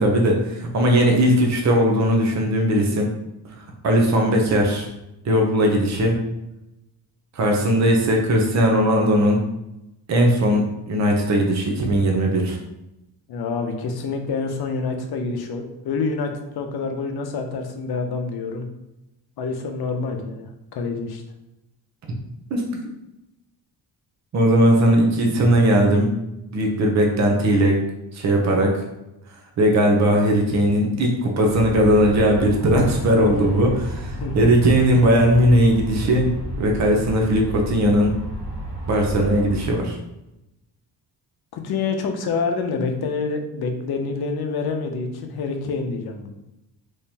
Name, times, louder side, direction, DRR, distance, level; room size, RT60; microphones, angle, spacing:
voice 1, 0.0-3.1 3.6-4.9 5.2-6.2 7.3-9.4 10.1-12.6 22.5-22.8 24.3-26.1 26.5-27.8 28.1-28.8 29.6-36.3 36.6-38.1 38.9-40.0, equal, 40° right, 1 dB, 0.7 m, -18 dB
voice 2, 13.3-18.7 19.4-21.2 34.2-34.4 41.5-46.3, left 4 dB, 65° left, 5 dB, 0.7 m, -27 dB
Aircraft, 31.4-39.7, right 1 dB, 80° right, 1.0 m, -32 dB
3.7 x 3.1 x 2.8 m, 0.90 s
cardioid pair, 150°, 41 cm